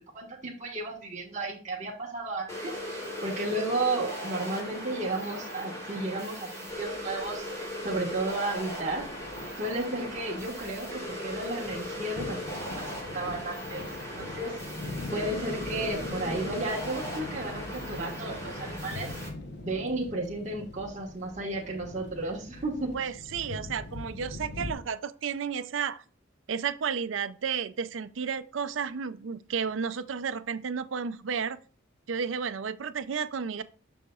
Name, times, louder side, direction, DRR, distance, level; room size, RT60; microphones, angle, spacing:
voice 1, 0.1-9.1 9.6-12.8 13.1-14.5 15.1-19.1 19.6-22.9, right 2 dB, 40° right, 1.4 m, -33 dB
sound 1, 2.5-19.3, equal, 15° left, 3.1 m, -38 dB
sound 2, 6.7-24.7, left 2 dB, 60° left, 0.9 m, -42 dB
voice 2, 22.9-26.0 26.5-31.6 32.1-33.6, right 6 dB, 75° right, 0.5 m, -32 dB
6.9 x 6.3 x 2.4 m
head